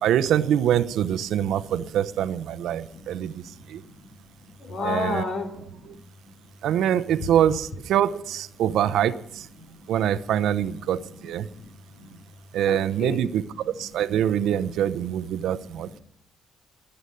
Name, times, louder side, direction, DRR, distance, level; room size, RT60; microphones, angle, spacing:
voice 1, 0.0-3.8 4.8-5.2 5.9-6.0 6.6-9.5 9.9-11.5 12.5-16.0, right 10 dB, 80° right, 14 dB, 0.7 m, -24 dB
voice 2, 1.3-1.9 2.9-4.1 4.4-6.0 7.2-7.3 9.7-9.8 11.1-12.2 12.7-13.3 13.8-13.9 15.5-16.0, left 3 dB, 60° left, 2 dB, 3.4 m, -35 dB
20.0 x 7.9 x 6.8 m, 0.70 s
cardioid pair, 90°, 0 cm